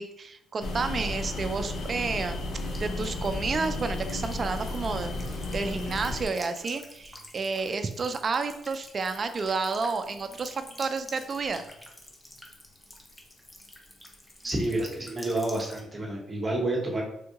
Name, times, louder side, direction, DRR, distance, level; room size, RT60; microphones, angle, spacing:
voice 1, 0.0-2.4 2.8-5.1 5.5-11.6, right 4 dB, 40° right, 9 dB, 0.3 m, -30 dB
sound 1, 0.6-6.3, left 2 dB, 70° left, 0.6 m, -33 dB
Buzz / Water tap faucet / Trickle dribble, 2.6-15.8, left 1 dB, 10° left, 0.6 m, -49 dB
voice 2, 14.4-17.0, right 1 dB, 25° right, -1 dB, 1.0 m, -29 dB
3.5 x 2.2 x 2.9 m, 0.79 s
cardioid pair, 90°, 0 cm